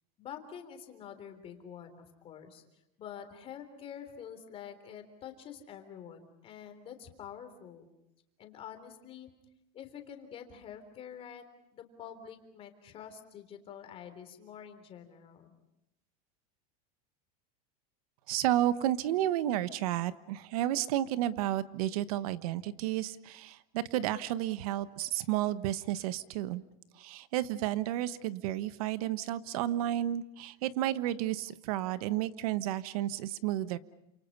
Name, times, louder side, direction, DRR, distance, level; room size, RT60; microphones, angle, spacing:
voice 1, 0.2-2.6 3.0-7.9 8.4-9.3 9.7-11.4 11.7-15.5, left 8 dB, 30° left, 7 dB, 3.6 m, -47 dB
voice 2, 18.3-26.6 27.0-33.8, right 13 dB, 70° right, 14 dB, 1.3 m, -32 dB
29.0 x 27.5 x 5.5 m, 0.86 s
supercardioid pair, 160°, 19 cm